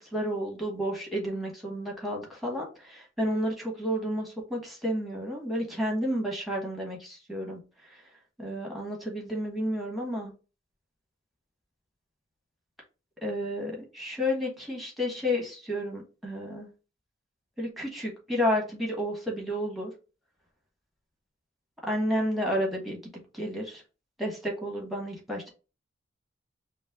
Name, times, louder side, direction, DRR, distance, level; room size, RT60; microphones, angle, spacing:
voice 1, 0.0-7.6 8.4-10.3 13.2-16.7 17.6-19.9 21.8-23.8 24.2-25.5, equal, ahead, -1 dB, 1.4 m, -31 dB
5.3 x 2.1 x 3.7 m, 0.32 s
head